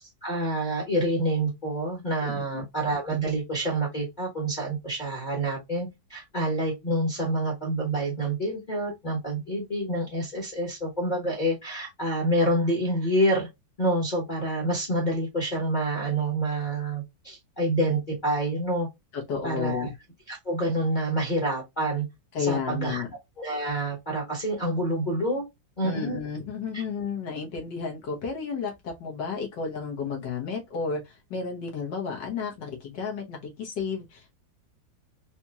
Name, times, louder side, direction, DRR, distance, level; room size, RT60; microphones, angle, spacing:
voice 1, 0.2-13.5 13.8-18.9 19.4-19.9 20.3-22.1 22.4-23.0 23.4-25.4 25.8-26.2 26.7-26.8, right 1 dB, 30° left, 1.2 m, -27 dB
voice 2, 2.2-2.6 19.1-19.9 22.3-23.1 25.8-34.4, left 5 dB, 70° left, 1.8 m, -32 dB
4.2 x 2.9 x 2.3 m
omnidirectional pair, 2.0 m